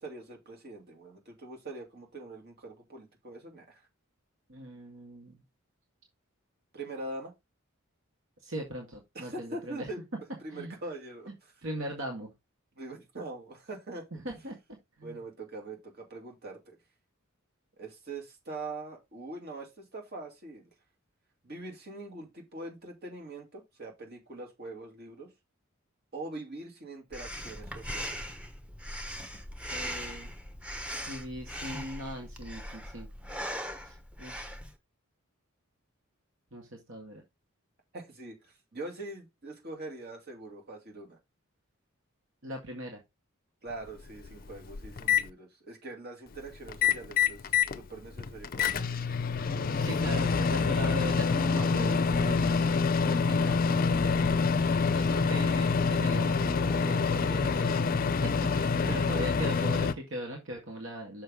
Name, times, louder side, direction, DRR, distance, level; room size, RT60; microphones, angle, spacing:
voice 1, 0.0-3.9 6.7-7.3 9.1-10.0 10.4-11.3 12.8-14.0 15.0-16.8 17.8-20.7 21.4-25.3 26.1-28.4 37.9-41.2 43.6-47.4 47.7-49.2 49.4-50.0 55.3-55.5 58.7-58.8, right 2 dB, 50° right, 2.4 m, -43 dB
voice 2, 4.5-5.4 8.4-9.9 10.5-10.7 11.6-12.3 14.2-14.6 15.0-15.2 29.7-30.3 31.0-33.1 33.8-34.5 36.5-37.2 42.4-43.0 49.8-52.7 53.0-54.4 54.9-61.2, equal, 65° right, 1.9 m, -39 dB
Breathing, 27.1-34.7, equal, 5° right, 0.9 m, -40 dB
Microwave oven, 43.7-43.8 44.2-45.2 46.7-47.8 48.1-59.9, left 5 dB, 45° left, 0.5 m, -26 dB
6.5 x 5.6 x 3.7 m
head